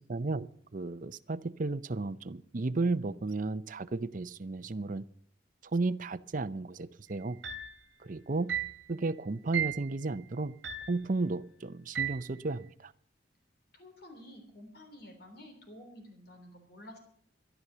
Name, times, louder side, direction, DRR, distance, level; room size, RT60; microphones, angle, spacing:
voice 1, 0.1-5.0 5.7-7.4 8.0-8.5 8.9-10.6 10.9-12.9, right 3 dB, 45° right, 12 dB, 0.6 m, -33 dB
sound 1, 7.4-7.8 8.5-8.8 9.5-9.8 10.6-11.0 11.9-12.3, right 8 dB, 75° right, 1.5 m, -34 dB
voice 2, 13.7-17.0, left 1 dB, 60° left, 5 dB, 3.4 m, -51 dB
13.5 x 11.0 x 6.8 m, 0.63 s
head